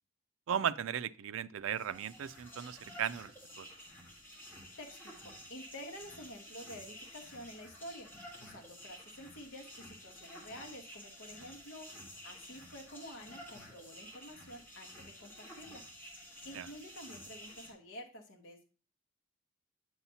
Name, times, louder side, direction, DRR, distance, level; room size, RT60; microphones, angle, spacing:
voice 1, 0.5-3.3 3.6-3.7 16.5-16.7, right 8 dB, 80° right, 14 dB, 0.4 m, -36 dB
sound 1, 1.6-17.7, equal, 10° left, 1.5 m, -52 dB
voice 2, 4.8-5.1 5.5-8.1 8.4-15.8 16.4-18.6, equal, 70° left, 1 dB, 1.2 m, -49 dB
7.9 x 5.6 x 2.8 m, 0.36 s
head